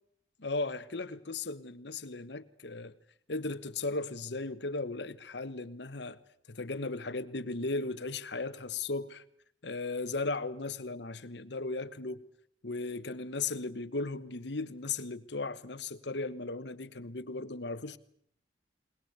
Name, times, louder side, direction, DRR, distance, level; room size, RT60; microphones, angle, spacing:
voice 1, 0.4-2.9 3.3-6.2 6.5-9.2 9.6-12.2 12.6-18.0, left 3 dB, 70° left, 1.2 m, -36 dB
21.5 x 20.5 x 8.2 m
head